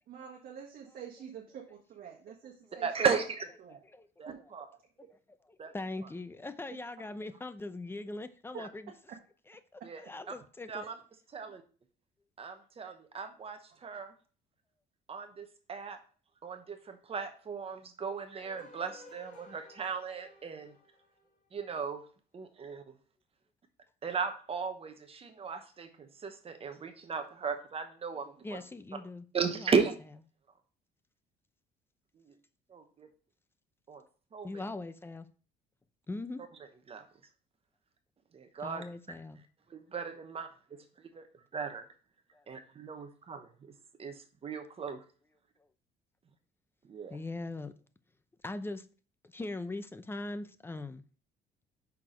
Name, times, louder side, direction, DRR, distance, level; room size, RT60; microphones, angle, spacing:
voice 1, 0.1-2.9 3.6-3.8 4.2-4.6 5.0-5.2 7.0-7.1 8.5-8.6, right 8 dB, 60° right, 1.4 m, -47 dB
voice 2, 2.8-3.4 4.2-4.7 5.6-5.7 8.6-8.7 9.8-10.0 10.7-10.9 11.3-11.5 12.4-14.1 15.1-16.0 16.4-20.7 21.5-22.0 22.3-22.8 24.0-28.6 29.3-29.9 32.7-33.1 33.9-34.0 34.3-34.6 36.9-37.0 38.3-38.8 39.7-40.5 41.1-41.3 41.5-41.8 42.5-43.5 44.0-45.0 46.9-47.2, right 5 dB, 35° right, 1.0 m, -35 dB
voice 3, 5.0-8.9 9.5-10.9 28.4-29.7 34.4-35.3 36.1-36.4 38.6-39.4 42.3-42.4 47.1-47.7 48.4-48.9 49.2-51.0, left 2 dB, 15° left, 0.6 m, -41 dB
sound 1, 18.4-21.7, left 2 dB, 45° left, 3.4 m, -55 dB
5.9 x 4.6 x 5.1 m
cardioid pair, 110°, 17 cm